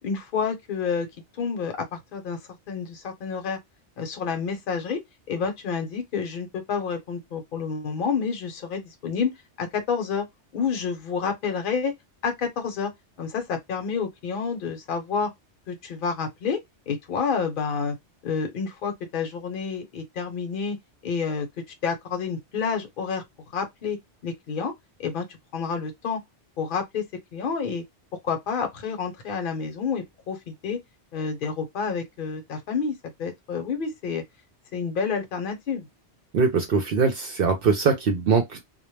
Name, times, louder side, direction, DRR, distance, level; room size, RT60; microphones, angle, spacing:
voice 1, 0.0-1.1 1.4-2.4 2.7-3.6 4.0-5.0 5.3-9.3 9.6-10.3 10.5-11.9 12.2-12.9 13.2-15.3 15.7-16.6 16.9-18.0 18.2-20.8 21.0-21.5 21.8-23.2 23.5-24.0 24.2-24.7 25.0-25.3 25.5-26.2 26.6-27.0 27.3-27.8 28.2-30.8 31.1-34.2 34.7-35.9, left 5 dB, 50° left, 0.8 m, -29 dB
voice 2, 36.3-38.7, right 5 dB, 60° right, 0.6 m, -22 dB
2.2 x 2.1 x 3.0 m
omnidirectional pair, 1.2 m